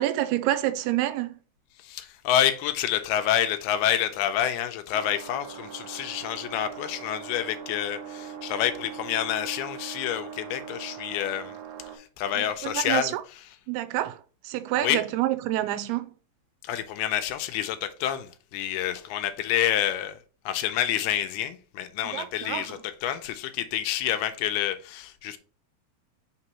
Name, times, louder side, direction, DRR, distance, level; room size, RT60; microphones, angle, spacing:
voice 1, 0.0-1.4 12.4-13.2 13.7-16.1 22.1-22.8, right 14 dB, 85° right, 2.6 m, -28 dB
voice 2, 1.8-11.6 11.9-13.1 14.8-15.0 16.6-20.2 20.5-25.4, left 11 dB, 85° left, 2.5 m, -28 dB
sound 1, 4.9-12.0, right 8 dB, 70° right, 1.6 m, -41 dB
6.0 x 3.0 x 5.5 m
omnidirectional pair, 4.6 m